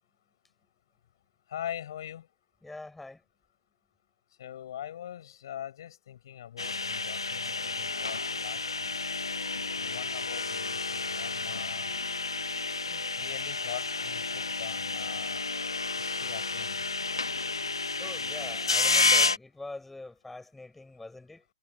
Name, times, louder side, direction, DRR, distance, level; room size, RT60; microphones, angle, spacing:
voice 1, 1.5-2.3 4.4-8.9 9.8-12.0 12.8-15.4 16.0-16.8, left 11 dB, 60° left, 7.7 m, -42 dB
voice 2, 2.6-3.2 18.0-21.5, left 2 dB, 5° left, 7.5 m, -44 dB
sound 1, 6.6-19.4, left 3 dB, 90° left, 0.6 m, -30 dB
figure-of-eight pair, 120°, 3 cm